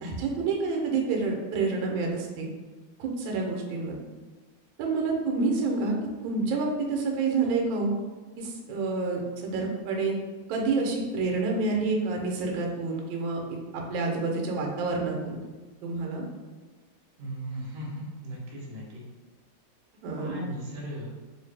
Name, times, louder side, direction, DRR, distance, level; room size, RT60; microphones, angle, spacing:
voice 1, 0.0-2.5 3.0-4.0 4.8-5.9 6.2-7.9 8.4-10.2 10.5-15.4 15.8-16.2 20.0-20.3, right 3 dB, 75° right, 0 dB, 1.3 m, -28 dB
voice 2, 17.2-19.0 20.1-21.1, equal, 55° right, -4 dB, 1.1 m, -37 dB
3.2 x 2.7 x 3.2 m, 1.3 s
omnidirectional pair, 2.3 m